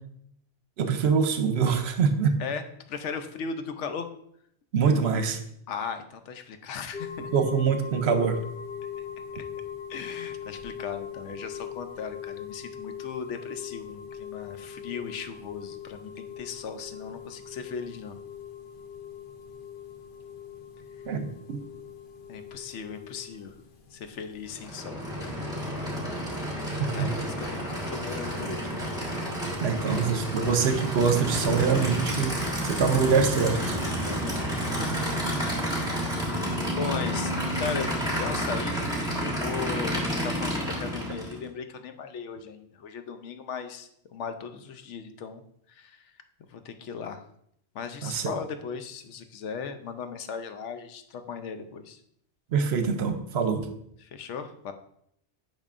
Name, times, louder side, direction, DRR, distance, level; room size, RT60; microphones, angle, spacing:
voice 1, 0.8-2.4 4.7-5.4 7.3-8.4 21.1-21.6 26.8-27.1 29.6-33.8 48.0-48.3 52.5-53.7, right 6 dB, 70° right, 8 dB, 0.9 m, -24 dB
voice 2, 2.4-4.1 5.7-7.3 9.9-18.2 22.3-23.5 23.9-25.5 26.5-28.8 29.9-30.1 33.0-33.1 34.0-35.1 35.5-35.9 36.2-38.9 39.2-45.4 45.7-46.1 46.5-47.2 47.7-52.0 54.0-54.7, left 6 dB, 85° left, 8 dB, 1.0 m, -37 dB
sound 1, 6.9-24.6, left 8 dB, 55° left, 0.8 m, -41 dB
Aircraft / Idling, 24.5-41.4, equal, 5° right, 1.5 m, -30 dB
8.7 x 5.5 x 2.5 m, 0.71 s
omnidirectional pair, 1.2 m